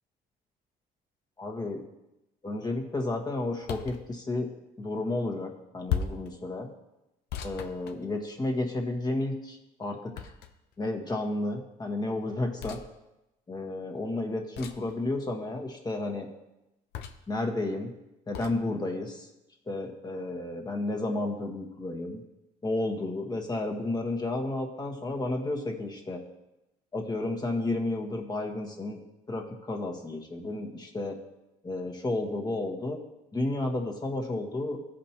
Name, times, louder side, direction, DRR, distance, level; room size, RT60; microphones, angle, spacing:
voice 1, 1.4-1.8 2.4-4.5 4.8-6.7 7.4-10.3 10.8-12.8 13.5-16.3 17.3-17.9 18.3-19.3 19.7-22.2 22.6-26.2 26.9-29.0 29.3-31.2 31.6-33.0 33.3-34.8, left 2 dB, 25° left, 3 dB, 1.4 m, -32 dB
sound 1, 3.6-4.0 5.9-6.3 7.3-8.5 10.1-10.7 12.6-12.9 14.5-14.9 16.9-17.3 18.3-18.6, left 8 dB, 75° left, 0.7 m, -35 dB
15.0 x 5.1 x 2.9 m, 0.92 s
cardioid pair, 110°, 17 cm